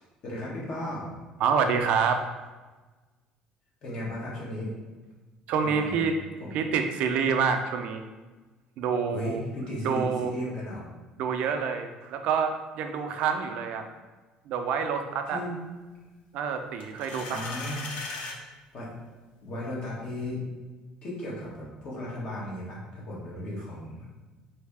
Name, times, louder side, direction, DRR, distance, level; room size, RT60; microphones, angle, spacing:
voice 1, 0.2-1.1 3.8-4.7 5.6-6.1 6.4-6.6 9.1-10.8 15.3-15.5 17.2-17.9 18.7-18.9 19.4-20.4 21.0-24.1, left 1 dB, 50° left, -5 dB, 1.2 m, -35 dB
voice 2, 1.4-2.2 5.5-6.1 6.5-8.0 8.8-9.4 9.8-10.3 11.2-13.9 14.5-15.4 16.3-17.4, right 6 dB, 65° right, 6 dB, 0.4 m, -27 dB
sound 1, 16.8-18.4, left 3 dB, 70° left, 0.5 m, -37 dB
3.2 x 2.7 x 3.4 m, 1.3 s
cardioid pair, 135°, 2 cm